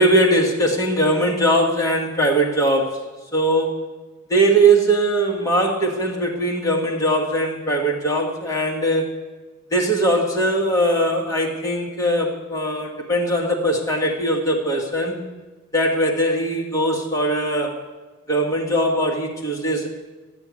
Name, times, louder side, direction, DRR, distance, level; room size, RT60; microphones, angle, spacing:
voice 1, 0.0-3.0 3.3-3.8 4.3-9.1 9.7-15.2 15.7-17.8 18.3-19.9, right 1 dB, 15° left, -1 dB, 1.9 m, -20 dB
12.0 x 7.0 x 9.6 m, 1.2 s
head